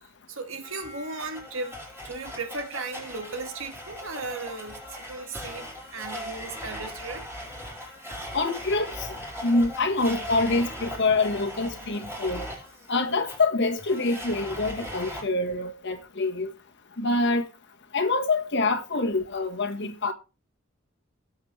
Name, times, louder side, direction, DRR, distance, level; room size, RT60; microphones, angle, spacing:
voice 1, 0.3-1.8 2.0-4.8 5.1-7.3 11.8-11.9, right 3 dB, 75° right, 2.0 m, -36 dB
Domestic sounds home sounds, 0.6-15.2, equal, 10° right, 4.8 m, -39 dB
voice 2, 8.3-8.9 9.4-12.5 12.9-16.5 17.0-17.4 17.9-20.1, left 3 dB, 60° left, 1.5 m, -25 dB
17.5 x 7.2 x 3.3 m
head